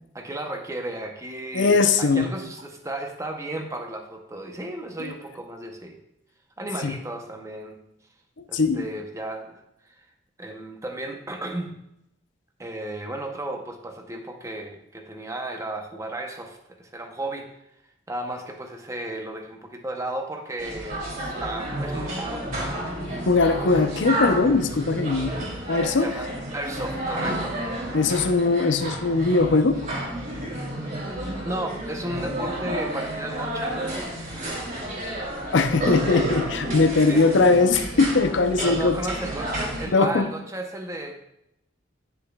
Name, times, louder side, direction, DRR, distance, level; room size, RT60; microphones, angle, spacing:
voice 1, 0.1-6.0 6.6-7.8 8.5-9.6 9.9-10.0 10.4-11.8 12.6-17.5 18.1-22.9 26.0-26.3 26.5-27.6 31.4-33.8 37.1-37.2 38.6-41.1, right 1 dB, 15° right, 4 dB, 0.7 m, -34 dB
voice 2, 1.5-2.3 5.0-5.1 6.8-6.9 8.5-8.8 23.3-26.1 27.9-29.8 35.5-39.0 39.9-40.3, left 3 dB, 65° left, 8 dB, 0.6 m, -20 dB
sound 1, 20.6-39.8, right 1 dB, 45° right, 3.0 m, -31 dB
9.9 x 6.8 x 2.3 m, 0.81 s
head